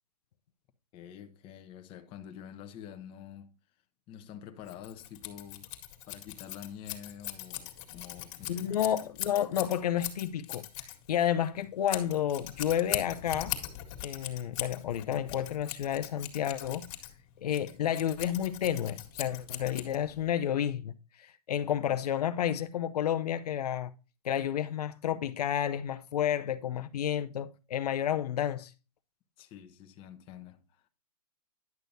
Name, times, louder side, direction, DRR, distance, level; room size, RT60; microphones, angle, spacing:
voice 1, 0.9-3.5 4.1-5.7 6.1-8.9 29.4-30.9, left 9 dB, 25° left, 1.0 m, -47 dB
Scissors, 4.6-20.3, left 13 dB, 45° left, 1.9 m, -40 dB
voice 2, 8.5-13.6 14.0-16.9 17.4-20.9 21.2-23.9 24.2-28.7, left 10 dB, 75° left, 0.7 m, -31 dB
10.5 x 6.4 x 2.7 m
hypercardioid pair, 145°, 20 cm